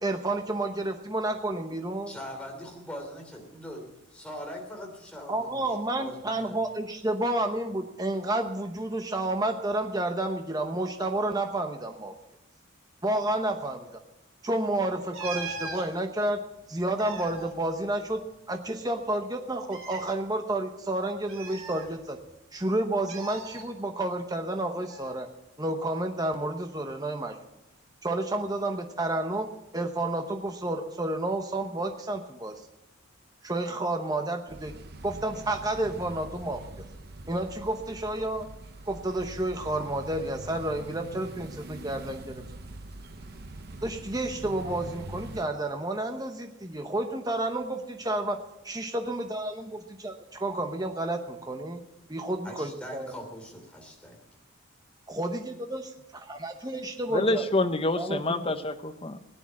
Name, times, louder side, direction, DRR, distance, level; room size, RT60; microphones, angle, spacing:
voice 1, 0.0-2.1 5.3-12.1 13.0-13.9 14.4-16.4 16.7-18.2 18.5-22.2 22.5-25.3 25.6-27.4 28.0-29.5 29.7-32.5 33.4-34.7 35.0-36.6 37.3-38.5 38.9-42.4 43.8-48.4 48.6-51.8 52.1-53.1 55.1-57.5 58.0-58.5, right 1 dB, 15° right, 5 dB, 0.9 m, -30 dB
voice 2, 2.1-5.7 6.0-6.6 52.4-54.2, equal, 5° left, 1 dB, 3.1 m, -42 dB
sound 1, 15.1-15.9 16.8-18.5 18.7-18.8 19.6-20.1 21.3-22.3 23.1-23.6 24.9-25.1, right 3 dB, 70° right, 2.9 m, -39 dB
sound 2, 34.5-45.4, right 2 dB, 45° right, 0.8 m, -43 dB
voice 3, 57.1-59.2, left 2 dB, 25° left, 8 dB, 0.9 m, -27 dB
17.0 x 9.9 x 7.4 m, 0.92 s
head